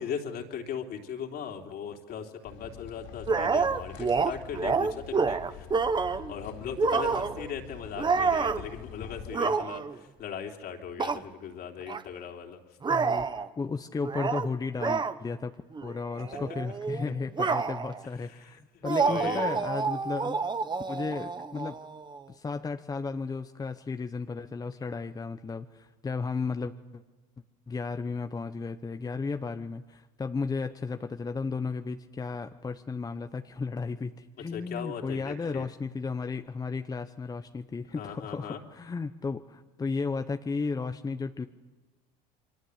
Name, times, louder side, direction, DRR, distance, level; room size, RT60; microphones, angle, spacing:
voice 1, 0.0-5.7 6.1-12.6 16.3-16.4 18.4-18.5 18.7-19.6 34.5-35.7 37.9-38.6, left 7 dB, 50° left, 3 dB, 3.4 m, -38 dB
sound 1, 2.4-9.3, left 8 dB, 70° left, 5.2 m, -45 dB
sound 2, 3.3-6.3 6.8-7.5 8.0-8.7 9.3-10.0 11.0-11.2 11.9-12.0 12.8-13.5 14.0-14.5 14.8-15.1 15.7-15.9 16.2-18.0 18.8-22.2, right 5 dB, 20° right, 1.1 m, -28 dB
voice 2, 12.9-15.5 15.8-20.4 20.9-21.8 22.3-27.0 27.7-41.5, left 4 dB, 20° left, 8 dB, 0.9 m, -34 dB
29.0 x 23.5 x 8.1 m, 1.2 s
supercardioid pair, 100°, 20 cm